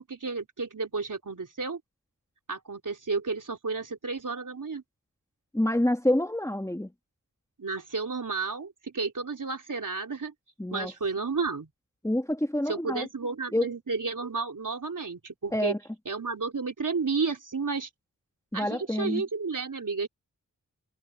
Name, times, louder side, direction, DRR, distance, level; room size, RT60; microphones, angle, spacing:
voice 1, 0.0-1.8 2.5-4.8 7.6-10.3 10.7-11.7 12.7-15.7 16.1-17.9 18.5-20.1, right 4 dB, 60° right, 4.1 m, -32 dB
voice 2, 5.5-6.9 10.6-10.9 12.0-13.1 13.5-13.7 15.5-15.8 18.5-19.2, left 1 dB, 10° left, 2.1 m, -27 dB
cardioid pair, 45°, 35 cm